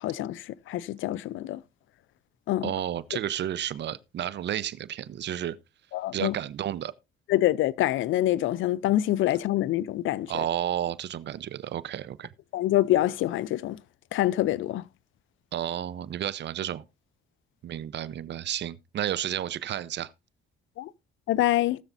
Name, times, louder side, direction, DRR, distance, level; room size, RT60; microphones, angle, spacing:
voice 1, 0.0-1.6 2.5-2.7 5.9-6.3 7.3-10.3 12.5-13.8 14.1-14.8 20.8-20.9 21.3-21.8, left 14 dB, 80° left, 0.5 m, -25 dB
voice 2, 2.6-5.6 6.1-6.9 10.3-12.3 15.5-16.8 17.6-20.1, right 11 dB, 60° right, 0.7 m, -31 dB
19.5 x 7.1 x 2.6 m
cardioid pair, 90°, 20 cm